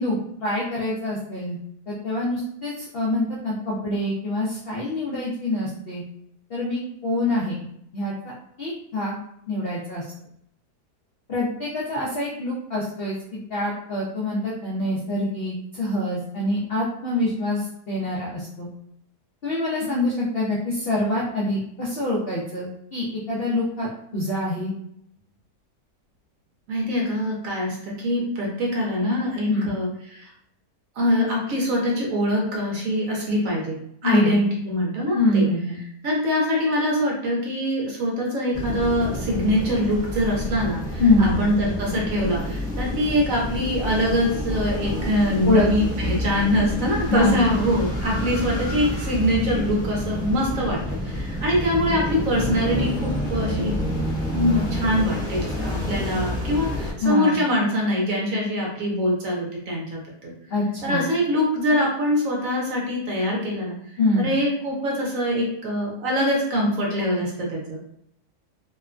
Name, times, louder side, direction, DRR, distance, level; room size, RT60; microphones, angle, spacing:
voice 1, 0.0-1.6 1.9-6.0 6.5-7.6 7.9-8.1 8.6-9.2 9.5-10.0 11.3-13.2 13.5-18.7 19.4-24.7 29.5-29.7 34.0-34.4 35.1-35.8 41.0-41.4 45.4-45.7 47.1-47.5 57.0-57.4 60.5-61.1 64.0-64.3, left 2 dB, 75° left, -5 dB, 0.5 m, -25 dB
voice 2, 26.7-30.3 31.0-35.5 36.0-54.0 54.3-60.3 60.8-63.8 64.2-67.8, equal, 60° right, -2 dB, 1.0 m, -24 dB
sound 1, 38.5-56.9, left 1 dB, 5° left, 0.3 m, -28 dB
2.9 x 2.2 x 2.4 m, 0.73 s
omnidirectional pair, 1.8 m